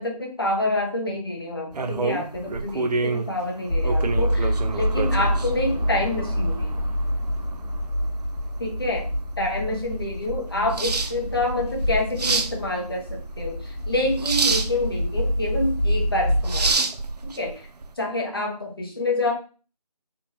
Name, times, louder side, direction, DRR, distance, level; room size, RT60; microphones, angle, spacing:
voice 1, 0.0-6.8 8.6-9.1 9.4-16.8 17.2-17.7 18.0-19.3, left 1 dB, 35° left, 0 dB, 1.0 m, -27 dB
sound 1, 1.7-17.9, right 4 dB, 80° right, 0.5 m, -29 dB
sound 2, 3.7-16.8, equal, 10° left, 1.4 m, -27 dB
3.5 x 2.9 x 2.7 m, 0.36 s
figure-of-eight pair, 175°, 20 cm